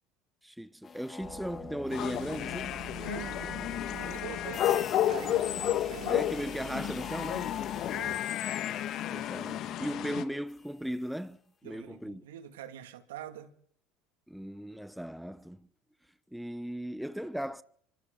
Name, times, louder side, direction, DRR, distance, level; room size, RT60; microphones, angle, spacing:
voice 1, 0.4-2.8 6.1-7.5 9.1-12.2 14.3-15.7 16.3-17.6, equal, ahead, 1.0 m, -37 dB
sound 1, 0.8-10.9, left 5 dB, 30° left, 1.5 m, -48 dB
sound 2, 1.2-8.2, right 10 dB, 45° right, 1.3 m, -48 dB
sound 3, 1.9-10.2, left 12 dB, 55° left, 1.7 m, -32 dB
voice 2, 3.0-6.3 7.9-8.3 9.1-9.3 11.6-13.5, right 11 dB, 85° right, 2.3 m, -45 dB
29.5 x 24.5 x 3.9 m
hypercardioid pair, 80°, 0 cm